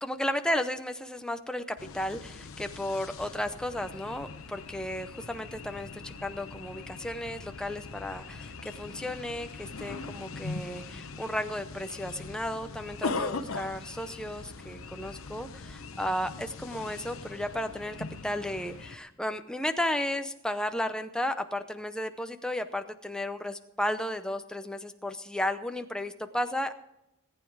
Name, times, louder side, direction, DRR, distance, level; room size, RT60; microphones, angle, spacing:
voice 1, 0.0-18.0 18.2-26.7, left 1 dB, 5° left, 7 dB, 0.6 m, -34 dB
sound 1, 1.8-19.0, left 3 dB, 70° left, 0.9 m, -41 dB
18.0 x 9.4 x 4.8 m, 0.88 s
head